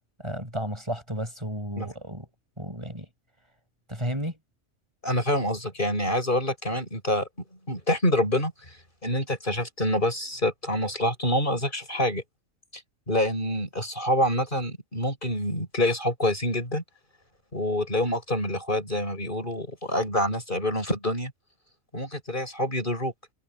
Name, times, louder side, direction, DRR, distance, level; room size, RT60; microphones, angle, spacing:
voice 1, 0.2-2.3 2.6-3.1 3.9-4.4, equal, 20° right, 7.3 m, -33 dB
voice 2, 5.0-7.3 7.7-8.5 9.0-12.2 13.1-16.8 17.5-21.3 21.9-23.1, left 1 dB, 40° left, 8.1 m, -26 dB
omnidirectional pair, 1.4 m